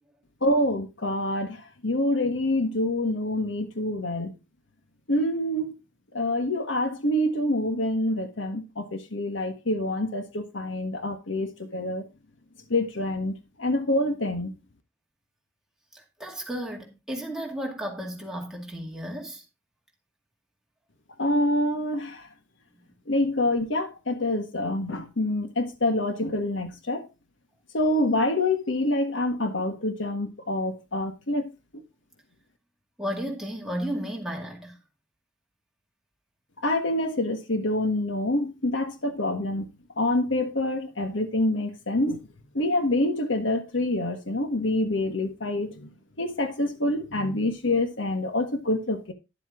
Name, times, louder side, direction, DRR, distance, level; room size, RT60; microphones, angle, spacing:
voice 1, 0.4-4.3 5.1-5.7 6.1-12.0 12.7-14.5 21.2-22.3 23.1-27.1 27.7-31.5 36.6-39.6 40.0-42.2 42.5-45.9 46.2-49.1, left 1 dB, 75° left, 1.5 m, -26 dB
voice 2, 15.9-19.4 33.0-34.8, equal, 5° right, 2.2 m, -33 dB
10.5 x 7.7 x 3.7 m
head